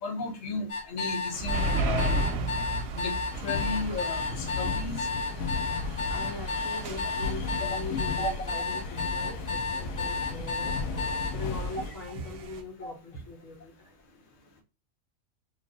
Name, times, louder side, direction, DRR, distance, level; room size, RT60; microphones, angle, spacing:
voice 1, 0.0-2.2 2.9-3.1 3.4-5.0 7.7-7.8 8.2-8.3 12.8-12.9, left 3 dB, 40° left, 0.9 m, -34 dB
sound 1, 0.7-11.3, left 4 dB, 15° left, 1.3 m, -32 dB
sound 2, 1.3-12.6, right 2 dB, 60° right, 0.8 m, -35 dB
sound 3, 3.3-11.9, left 4 dB, 90° left, 1.0 m, -35 dB
voice 2, 6.1-10.8 11.3-13.9, left 2 dB, 75° left, 1.3 m, -41 dB
3.2 x 2.5 x 3.5 m
omnidirectional pair, 1.4 m